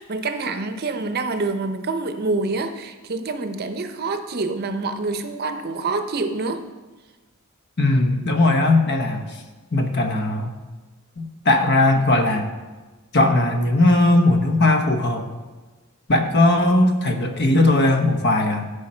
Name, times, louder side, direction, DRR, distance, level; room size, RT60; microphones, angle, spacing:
voice 1, 0.0-6.6, right 3 dB, 45° right, 8 dB, 0.7 m, -26 dB
voice 2, 7.8-9.4 9.7-10.5 11.2-12.5 13.1-15.3 16.1-18.7, left 2 dB, 50° left, 5 dB, 1.0 m, -18 dB
14.5 x 5.1 x 4.3 m, 1.3 s
head